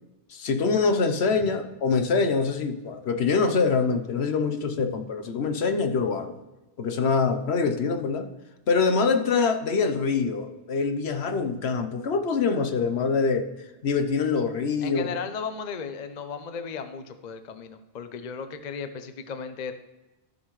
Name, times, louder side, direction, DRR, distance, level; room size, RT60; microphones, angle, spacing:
voice 1, 0.3-6.3 6.8-8.3 8.7-13.5 13.8-15.1, left 4 dB, 65° left, 7 dB, 1.0 m, -24 dB
voice 2, 14.8-19.7, left 6 dB, 45° left, 9 dB, 0.7 m, -35 dB
13.5 x 6.4 x 3.1 m, 1.1 s
omnidirectional pair, 1.2 m